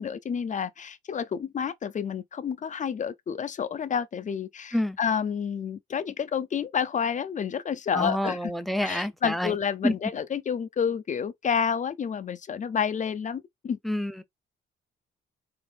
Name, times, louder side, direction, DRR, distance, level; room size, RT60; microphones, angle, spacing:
voice 1, 0.0-8.5 8.8-13.8, left 7 dB, 40° left, 0.6 m, -29 dB
voice 2, 7.9-9.5 9.8-9.9 13.8-14.2, left 1 dB, ahead, 0.6 m, -28 dB
3.8 x 2.8 x 3.4 m
cardioid pair, 90°, 20 cm